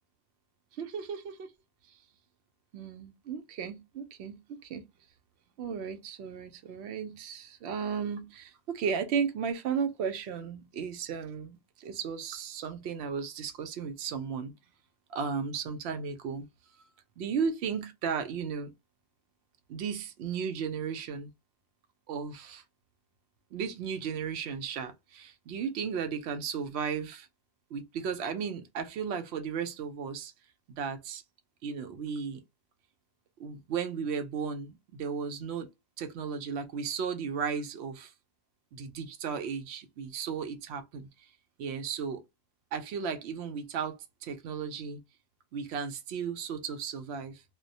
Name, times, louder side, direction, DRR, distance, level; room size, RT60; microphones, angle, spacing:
voice 1, 0.8-1.5 1.9-2.0 2.7-4.9 5.6-14.5 15.1-16.5 17.2-18.7 19.7-21.3 22.1-22.6 23.5-27.3 27.7-30.3 30.7-31.2 31.6-32.4 33.4-35.7 36.0-38.1 38.7-41.3 41.6-42.2 42.7-45.0 45.5-47.4, right 6 dB, 65° right, 0.8 m, -35 dB
2.3 x 2.1 x 2.6 m
omnidirectional pair, 1.3 m